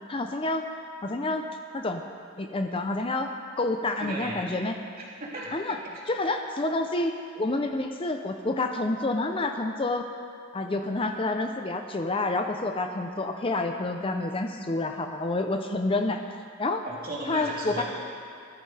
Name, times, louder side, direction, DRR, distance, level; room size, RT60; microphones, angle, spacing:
voice 1, 0.1-0.7 1.0-2.0 2.4-3.3 3.6-4.7 5.5-5.8 6.1-10.0 10.5-16.2 16.6-16.8 17.3-17.8, left 2 dB, 25° left, 5 dB, 0.5 m, -28 dB
voice 2, 4.0-4.4 5.2-6.0 16.8-17.8, right 1 dB, 45° right, -6 dB, 3.1 m, -36 dB
19.5 x 12.5 x 3.3 m, 2.4 s
head